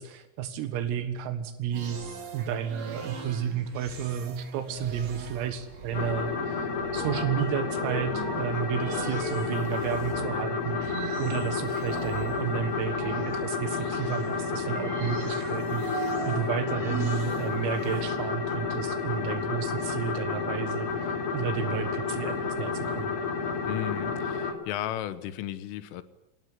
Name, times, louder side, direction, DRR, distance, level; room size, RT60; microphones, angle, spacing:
voice 1, 0.0-2.0 2.3-15.8 16.2-23.1, right 8 dB, 80° right, 10 dB, 4.2 m, -32 dB
sound 1, 1.7-18.0, right 4 dB, 40° right, 3.1 m, -39 dB
sound 2, 5.9-24.5, left 5 dB, 45° left, 3.7 m, -31 dB
voice 2, 23.7-26.0, left 12 dB, 80° left, 14 dB, 3.5 m, -34 dB
24.5 x 19.5 x 9.7 m, 0.88 s
omnidirectional pair, 6.0 m